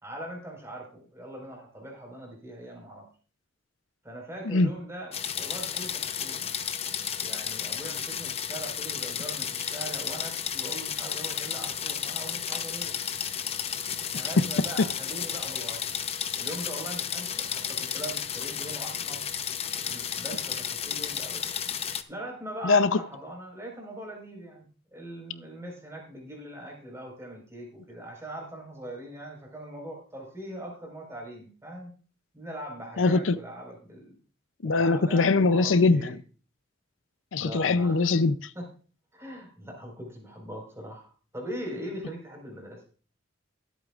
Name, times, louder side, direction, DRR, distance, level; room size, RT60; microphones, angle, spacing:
voice 1, 0.0-3.1 4.0-6.5 7.2-13.0 14.1-15.9 16.4-19.2 19.8-21.5 22.1-31.9 32.3-34.1 34.6-36.2 37.3-38.1 38.5-38.7 39.1-42.9, right 1 dB, 15° right, 4.7 m, -41 dB
sound 1, 5.1-22.0, left 8 dB, 30° left, 0.7 m, -33 dB
voice 2, 22.6-23.0 33.0-33.4 34.6-36.1 37.3-38.5, left 3 dB, 90° left, 0.6 m, -22 dB
23.0 x 8.3 x 2.5 m
head